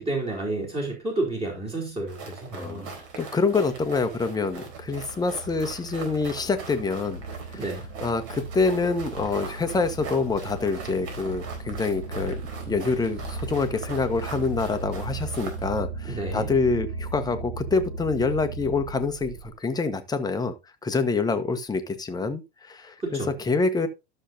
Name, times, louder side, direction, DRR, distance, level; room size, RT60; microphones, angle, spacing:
voice 1, 0.0-2.9 7.6-7.8 16.0-16.5 23.0-23.3, right 2 dB, 15° right, 3.3 m, -30 dB
sound 1, 2.1-15.7, right 5 dB, 50° right, 4.0 m, -42 dB
sound 2, 2.3-19.6, right 3 dB, 70° right, 2.8 m, -37 dB
voice 2, 2.5-7.2 7.5-7.6 8.0-12.4 12.7-20.6 20.8-23.9, left 4 dB, 10° left, 1.2 m, -26 dB
12.5 x 6.6 x 2.7 m
hypercardioid pair, 100°, 34 cm